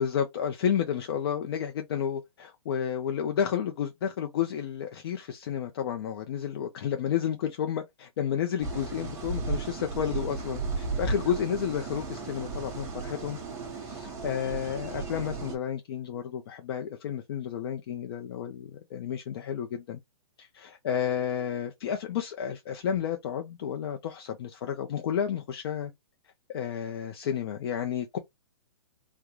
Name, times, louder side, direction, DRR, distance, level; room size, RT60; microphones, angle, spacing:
voice 1, 0.0-13.4 13.7-20.0 20.4-25.9 26.5-28.2, left 8 dB, 45° left, 0.5 m, -31 dB
sound 1, 8.6-15.6, right 4 dB, 15° right, 1.0 m, -35 dB
3.7 x 2.2 x 2.9 m
hypercardioid pair, 155°, 18 cm